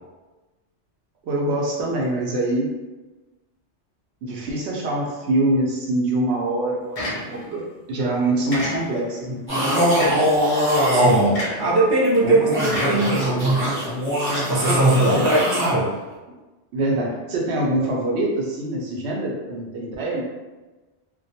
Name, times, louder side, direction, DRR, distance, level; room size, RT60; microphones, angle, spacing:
voice 1, 1.2-2.7 4.2-9.4 15.1-15.3 16.7-20.2, right 1 dB, 70° right, -2 dB, 0.8 m, -24 dB
sound 1, 7.0-7.6 8.5-9.2 10.0-10.4 11.3-11.8 12.7-13.6, equal, 50° left, 0.4 m, -30 dB
sound 2, 9.5-11.3 12.0-15.7, equal, 15° right, 0.8 m, -21 dB
voice 2, 10.9-13.7 14.1-15.9, right 2 dB, 35° right, -5 dB, 0.4 m, -20 dB
2.2 x 2.2 x 2.7 m, 1.2 s
omnidirectional pair, 1.2 m